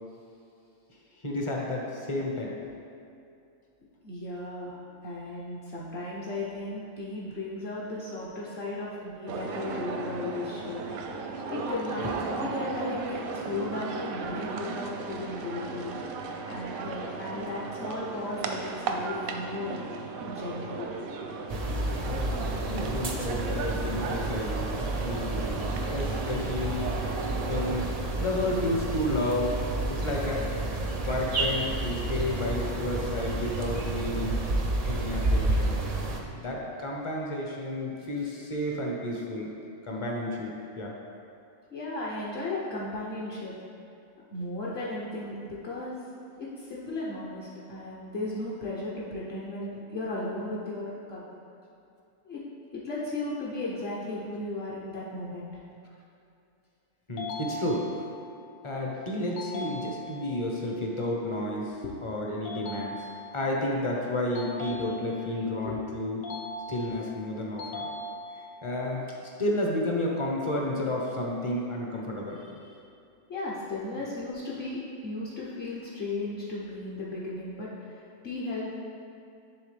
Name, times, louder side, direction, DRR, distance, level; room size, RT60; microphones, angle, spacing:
voice 1, 1.2-2.5 22.1-26.9 27.5-27.9 28.2-29.6 29.9-30.5 31.0-34.4 34.8-35.8 36.3-39.5 39.8-40.5 40.8-40.9 57.1-57.9 58.6-63.0 63.3-66.3 66.7-67.9 68.4-72.6, left 1 dB, 30° left, -2 dB, 0.6 m, -31 dB
voice 2, 4.0-4.8 5.0-10.8 11.1-11.2 11.5-15.9 16.4-19.7 20.3-20.9 41.7-43.5 44.3-45.9 46.4-51.2 52.2-52.4 52.7-55.5 61.8-61.9 64.7-64.8 65.6-65.8 73.3-78.7, left 2 dB, 50° left, -7 dB, 1.0 m, -35 dB
sound 1, 9.3-27.9, right 4 dB, 85° right, 1.0 m, -36 dB
sound 2, 21.5-36.2, right 2 dB, 55° right, 0.4 m, -30 dB
sound 3, 57.2-58.2 59.4-60.4 62.4-63.5 64.3-65.4 66.2-67.1 67.6-68.6, left 1 dB, 75° left, 1.2 m, -39 dB
10.5 x 3.6 x 3.3 m, 2.6 s
omnidirectional pair, 1.4 m